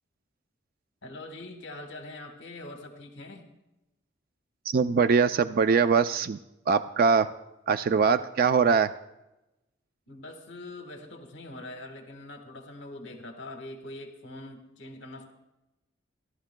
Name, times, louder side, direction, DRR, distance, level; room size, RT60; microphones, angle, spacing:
voice 1, 1.0-3.5 10.1-15.3, left 2 dB, 65° left, 4 dB, 1.4 m, -43 dB
voice 2, 4.7-6.4 6.7-7.3 7.7-8.9, right 5 dB, 50° right, 11 dB, 0.3 m, -22 dB
28.5 x 11.5 x 2.2 m, 0.96 s
head